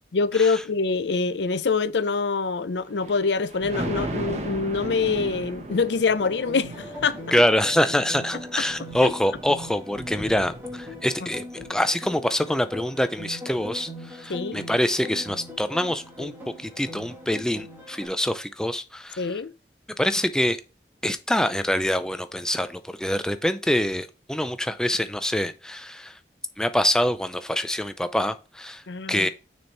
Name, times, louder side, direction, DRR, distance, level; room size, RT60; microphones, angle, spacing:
voice 1, 0.1-7.2 8.6-8.7 9.0-9.1 11.2-11.3 14.3-14.6 19.2-19.5 28.9-29.3, left 4 dB, 85° left, 0.6 m, -25 dB
Thunder, 2.9-11.2 11.6-11.7, right 2 dB, 40° right, 1.0 m, -36 dB
sound 1, 6.2-18.1, left 1 dB, 10° right, 1.9 m, -40 dB
voice 2, 7.3-11.4 11.7-16.3 16.6-19.4 20.0-20.6 21.0-26.2 26.6-28.8 29.1-29.3, left 1 dB, 5° left, 0.5 m, -25 dB
6.3 x 4.3 x 4.6 m
head